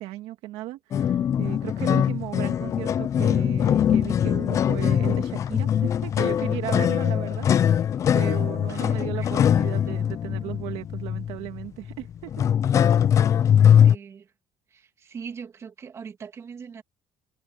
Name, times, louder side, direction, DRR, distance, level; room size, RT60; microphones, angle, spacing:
voice 1, 0.0-7.5 7.7-12.3, right 16 dB, 75° right, 2.2 m, -36 dB
sound 1, 0.9-14.0, left 9 dB, 30° left, 0.4 m, -22 dB
voice 2, 8.7-9.3 13.7-14.3 14.7-16.8, right 6 dB, 30° right, 2.4 m, -41 dB
cardioid pair, 160°, 10 cm